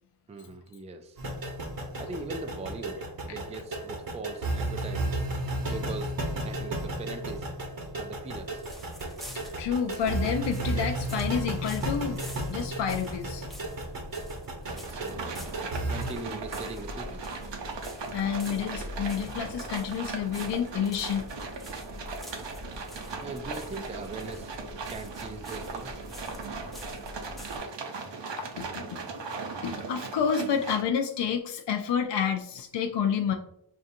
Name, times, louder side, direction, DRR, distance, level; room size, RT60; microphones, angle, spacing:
voice 1, 0.3-1.2 2.0-5.2 5.6-7.5 7.9-8.6 14.7-15.5 15.9-17.3 23.2-24.5 24.9-26.0, right 3 dB, 15° right, 6 dB, 0.3 m, -40 dB
sound 1, 1.2-16.1, right 1 dB, 50° right, 0.9 m, -33 dB
sound 2, 8.3-27.6, left 1 dB, ahead, 0.7 m, -45 dB
voice 2, 9.3-12.2 12.5-13.5 18.1-21.3 28.4-29.0 29.4-33.3, left 7 dB, 70° left, 4 dB, 0.5 m, -29 dB
sound 3, 14.7-30.8, right 4 dB, 70° right, 0.8 m, -38 dB
5.3 x 2.5 x 2.6 m, 0.71 s
wide cardioid pair, 120°, 44 cm